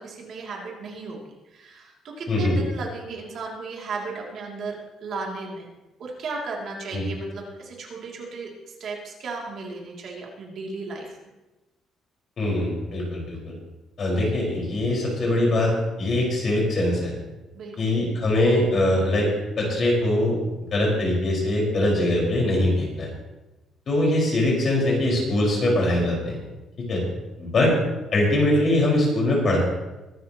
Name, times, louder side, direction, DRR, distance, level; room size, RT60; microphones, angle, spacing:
voice 1, 0.0-5.7 6.0-11.3 17.5-17.8, right 3 dB, 50° right, -1 dB, 2.7 m, -35 dB
voice 2, 2.3-2.6 6.9-7.0 12.4-13.5 14.0-15.7 16.0-17.1 17.8-19.3 19.6-20.3 20.7-23.1 23.9-26.4 26.9-27.0 27.4-27.7 28.1-29.7, left 1 dB, 35° left, -2 dB, 5.0 m, -22 dB
23.0 x 12.0 x 3.0 m, 1.1 s
cardioid pair, 170°, 0 cm